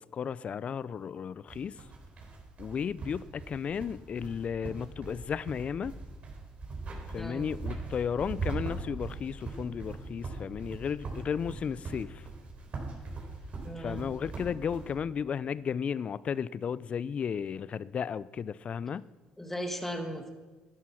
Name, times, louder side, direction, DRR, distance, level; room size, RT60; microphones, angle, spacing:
voice 1, 0.0-1.7 2.6-5.9 7.1-12.3 13.8-19.0, left 7 dB, 45° left, 0.5 m, -34 dB
sound 1, 1.5-14.9, right 3 dB, 50° right, 4.1 m, -40 dB
voice 2, 7.2-7.5 13.6-14.0 19.4-20.3, equal, 10° left, 1.6 m, -37 dB
12.0 x 11.0 x 5.9 m
supercardioid pair, 85°, 3 cm